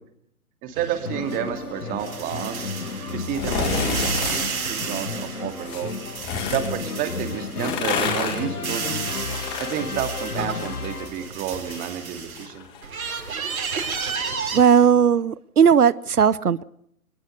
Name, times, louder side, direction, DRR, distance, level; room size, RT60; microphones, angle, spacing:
voice 1, 0.6-2.7 3.1-6.0 6.5-8.8 9.6-12.7 12.9-13.0, right 10 dB, 20° right, 7 dB, 2.4 m, -30 dB
sound 1, 0.8-7.7 8.1-12.5 12.8-14.6, right 5 dB, 65° right, 4.2 m, -32 dB
sound 2, 1.0-11.4, left 4 dB, 90° left, 1.6 m, -33 dB
sound 3, 3.3-4.5 5.6-6.7 7.4-10.9 11.2-14.6 15.0-15.1, left 5 dB, 25° left, 5.5 m, -30 dB
voice 2, 14.5-16.6, right 7 dB, 85° right, 18 dB, 0.8 m, -17 dB
22.5 x 20.5 x 6.6 m, 0.70 s
figure-of-eight pair, 135°, 44 cm